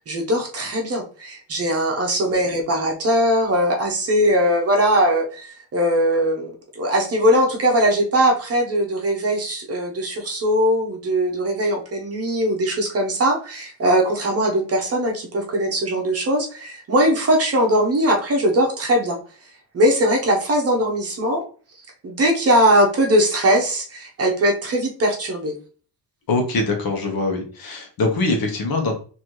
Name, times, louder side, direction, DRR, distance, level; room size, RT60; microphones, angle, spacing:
voice 1, 0.1-19.2 19.7-21.4 22.0-25.6, equal, 35° right, 1 dB, 0.8 m, -20 dB
voice 2, 26.3-28.9, left 2 dB, 50° left, 3 dB, 1.1 m, -23 dB
4.1 x 2.7 x 3.0 m, 0.40 s
cardioid pair, 160°, 44 cm